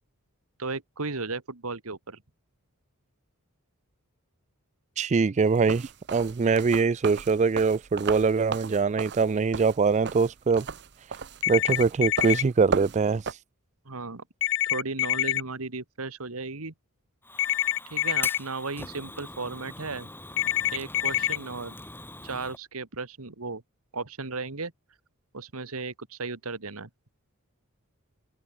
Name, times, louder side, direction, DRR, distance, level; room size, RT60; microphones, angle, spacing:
voice 1, 0.6-2.2 13.9-14.2 14.7-16.7 17.9-20.1 20.7-21.8 22.2-23.6 23.9-24.7 25.3-26.9, right 3 dB, 70° right, 1.8 m, -35 dB
voice 2, 5.0-10.7 11.5-13.4, right 5 dB, 30° right, 0.4 m, -23 dB
sound 1, 5.5-13.3, right 5 dB, 50° right, 0.9 m, -35 dB
sound 2, 11.4-12.4 14.4-15.4 17.4-18.4 20.4-21.4, left 13 dB, 60° left, 1.2 m, -26 dB
Fire, 17.2-22.6, left 2 dB, 10° left, 7.1 m, -42 dB
head